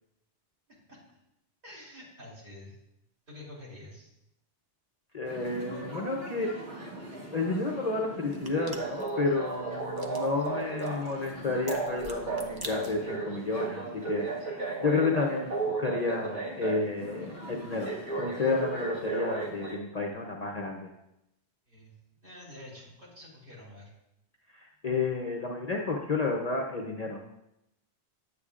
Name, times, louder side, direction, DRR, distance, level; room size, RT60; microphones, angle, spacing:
voice 1, 0.7-1.0 1.6-2.8 3.3-4.1 21.7-23.9, left 1 dB, 50° right, -6 dB, 3.2 m, -48 dB
voice 2, 5.1-6.6 7.3-17.9 18.2-20.9 24.5-27.2, left 3 dB, 40° left, 0 dB, 0.7 m, -31 dB
sound 1, 5.3-19.8, right 3 dB, 85° right, 2.0 m, -36 dB
sound 2, 8.3-13.3, right 1 dB, 25° right, 0.5 m, -47 dB
9.2 x 8.2 x 2.4 m, 0.86 s
omnidirectional pair, 1.2 m